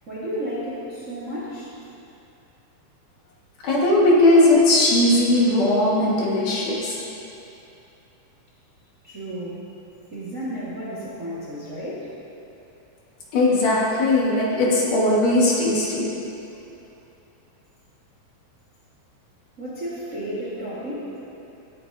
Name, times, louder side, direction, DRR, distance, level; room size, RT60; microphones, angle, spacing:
voice 1, 0.1-1.7 9.0-9.6 10.1-12.1 19.6-21.1, equal, 40° right, -8 dB, 1.2 m, -32 dB
voice 2, 3.6-7.0 13.3-16.1, left 1 dB, 65° left, -5 dB, 2.9 m, -18 dB
19.5 x 9.1 x 2.7 m, 2.8 s
omnidirectional pair, 4.2 m